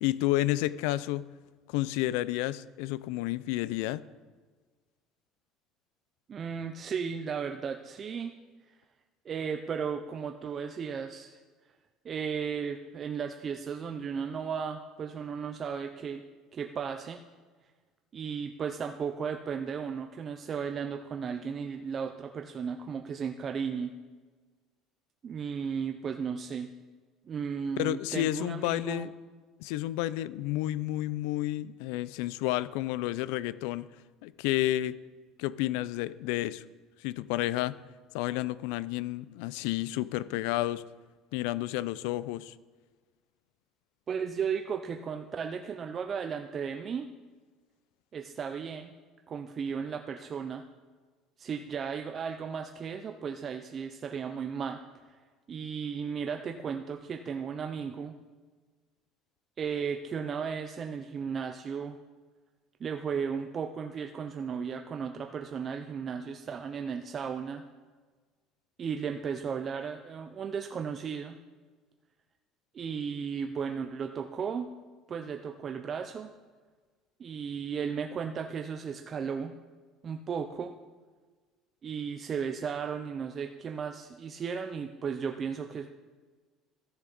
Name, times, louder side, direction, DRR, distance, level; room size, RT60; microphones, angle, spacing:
voice 1, 0.0-1.3 1.7-4.0 27.8-29.1 29.6-33.9 34.2-35.0 35.4-36.6 37.0-37.8 38.1-40.9 41.3-42.5, left 16 dB, 85° left, 18 dB, 0.3 m, -31 dB
voice 2, 6.3-8.3 8.7-8.8 9.3-11.4 12.0-16.2 16.5-17.2 18.1-24.0 25.2-26.7 27.2-29.1 44.1-47.1 48.1-48.9 49.3-50.6 51.4-54.8 55.1-55.2 55.5-58.1 59.6-62.0 62.8-67.6 68.8-71.4 72.7-74.7 75.1-76.3 77.2-79.5 80.0-80.7 81.8-85.9, right 6 dB, 25° right, 5 dB, 0.3 m, -35 dB
14.0 x 6.6 x 3.9 m, 1.4 s
cardioid pair, 175°, 0 cm